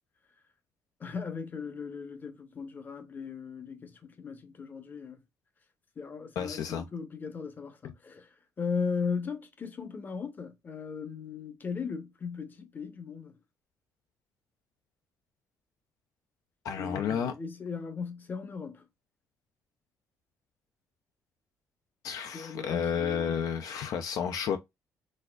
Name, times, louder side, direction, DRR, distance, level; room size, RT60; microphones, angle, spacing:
voice 1, 1.0-5.2 6.0-13.4 16.8-18.9 22.3-23.4, left 5 dB, 30° left, 0.7 m, -37 dB
voice 2, 6.4-6.8 16.6-17.3 22.0-24.6, left 7 dB, 70° left, 0.4 m, -31 dB
4.1 x 2.4 x 2.2 m
cardioid pair, 125°, 6 cm